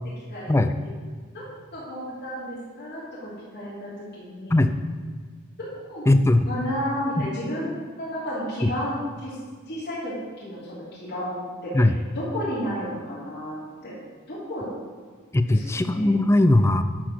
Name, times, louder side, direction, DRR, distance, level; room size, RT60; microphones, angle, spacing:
voice 1, 1.7-4.5 5.9-6.1 6.4-9.4 9.7-11.8 12.1-13.6 13.8-13.9 14.3-14.6 15.5-16.1, equal, 50° left, -9 dB, 3.1 m, -32 dB
voice 2, 6.1-6.5 7.2-7.3 8.6-8.7 11.7-12.0 15.3-16.8, left 1 dB, 10° left, 9 dB, 0.3 m, -19 dB
12.0 x 4.0 x 6.4 m, 1.5 s
head